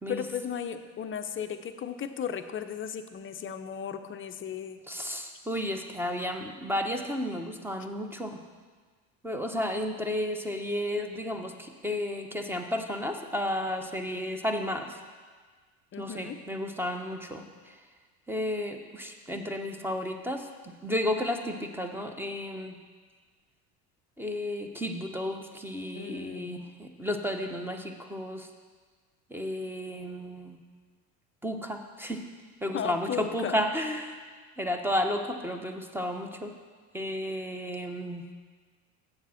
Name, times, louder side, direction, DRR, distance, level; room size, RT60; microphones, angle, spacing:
voice 1, 0.1-4.8 15.9-16.4 25.9-26.6 32.7-33.6, left 8 dB, 25° left, 8 dB, 0.6 m, -35 dB
voice 2, 4.9-8.4 9.2-15.0 16.0-17.8 18.3-22.8 24.2-28.5 29.3-30.6 31.4-32.2 32.6-34.2 34.6-36.5 36.9-38.2, left 1 dB, 5° right, 4 dB, 0.9 m, -32 dB
7.8 x 7.2 x 5.7 m, 1.5 s
hypercardioid pair, 85°, 48 cm